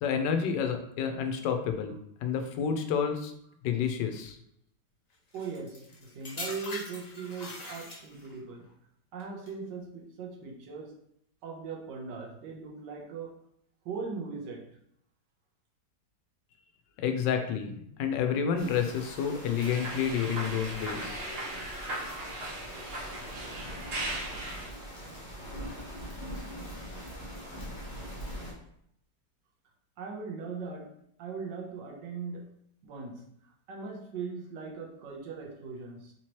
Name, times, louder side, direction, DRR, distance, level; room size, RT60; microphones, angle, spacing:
voice 1, 0.0-1.9 2.2-3.3 3.6-4.4 17.0-21.2, left 7 dB, 85° left, 6 dB, 1.2 m, -29 dB
sound 1, 5.3-8.4 9.2-9.5, left 2 dB, 50° left, 0.5 m, -42 dB
voice 2, 5.3-8.7 9.1-11.0 11.4-13.4 13.8-14.7 30.0-32.5 32.8-33.2 33.7-36.1, right 5 dB, 80° right, 1 dB, 1.4 m, -39 dB
sound 2, 18.6-28.5, equal, 25° left, 0.8 m, -43 dB
sound 3, 19.6-24.7, right 1 dB, 50° right, 0.7 m, -38 dB
4.0 x 3.0 x 2.9 m, 0.69 s
omnidirectional pair, 1.9 m